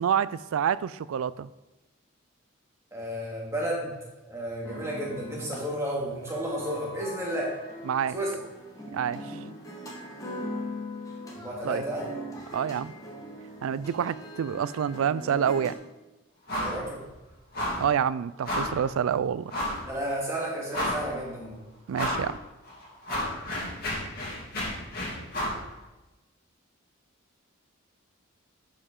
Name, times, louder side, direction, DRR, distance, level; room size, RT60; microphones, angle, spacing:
voice 1, 0.0-1.5 7.9-8.2 8.9-9.2 11.6-11.8 12.5-12.9 13.6-15.7 17.8-19.5 21.9-22.4, right 8 dB, 75° right, 18 dB, 0.3 m, -27 dB
voice 2, 2.9-3.9 4.3-7.5 8.1-8.3 11.3-12.1 16.6-17.0 19.8-21.6, right 1 dB, 15° right, -4 dB, 2.0 m, -32 dB
sound 1, 4.6-15.7, equal, 15° left, 1.3 m, -41 dB
sound 2, 16.5-16.8 17.1-17.2 17.5-17.9 18.4-18.8 19.5-19.9 20.3-20.4 20.7-21.2 21.9-22.3 22.7-25.6, left 1 dB, 45° left, 2.4 m, -31 dB
11.0 x 5.5 x 3.7 m, 1.1 s
head